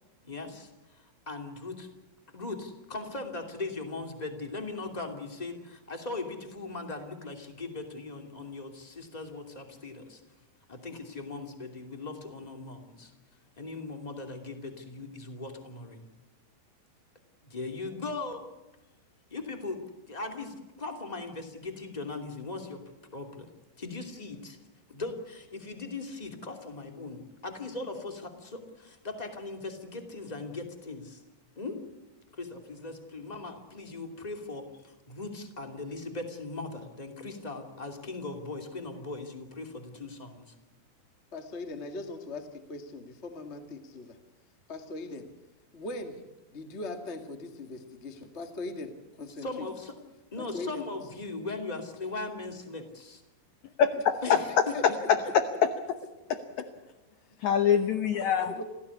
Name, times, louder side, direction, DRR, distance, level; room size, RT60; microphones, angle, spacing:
voice 1, 0.2-1.9 2.3-10.2 10.7-13.1 13.6-16.1 17.4-18.5 19.3-19.8 20.1-22.8 23.1-23.5 23.8-24.6 24.9-31.2 31.6-31.8 32.4-40.5 49.4-49.9 50.3-53.2 54.2-54.9, left 3 dB, 15° left, 4 dB, 1.9 m, -39 dB
voice 2, 41.3-44.2 44.7-45.3 45.7-46.2 46.5-49.7 50.4-50.8 54.2-55.1 58.2-58.6, left 2 dB, 35° left, 6 dB, 1.0 m, -40 dB
voice 3, 53.8-54.4 57.4-58.6, left 8 dB, 80° left, 9 dB, 1.6 m, -24 dB
27.5 x 16.0 x 8.5 m, 1.1 s
omnidirectional pair, 4.8 m